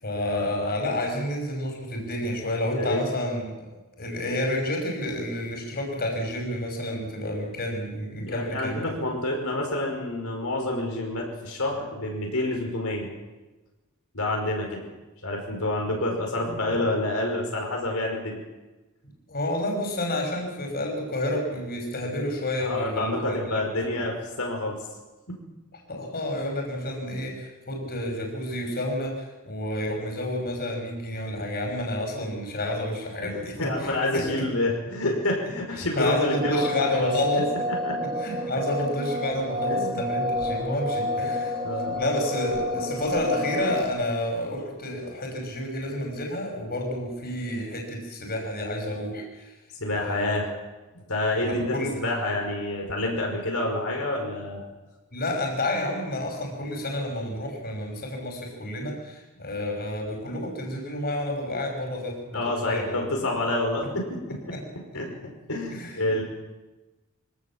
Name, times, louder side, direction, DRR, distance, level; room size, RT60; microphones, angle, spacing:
voice 1, 0.0-3.7 4.0-8.9 19.3-23.6 23.9-24.0 25.9-34.5 36.0-37.5 38.2-41.5 42.0-49.5 49.9-50.4 51.4-51.9 55.1-63.0 64.5-64.6 65.7-65.9, left 1 dB, 45° left, 2 dB, 5.9 m, -30 dB
voice 2, 2.7-3.0 8.2-13.1 14.1-14.9 15.2-18.4 22.6-24.8 33.2-36.7 36.9-37.1 37.8-38.0 39.7-40.0 41.2-41.3 41.6-42.0 49.8-50.5 51.1-54.6 62.3-64.5 64.9-66.2, left 1 dB, 70° left, 0 dB, 5.4 m, -28 dB
sound 1, 36.3-43.8, left 1 dB, 20° right, 2.3 m, -29 dB
25.0 x 18.0 x 7.4 m, 1.1 s
head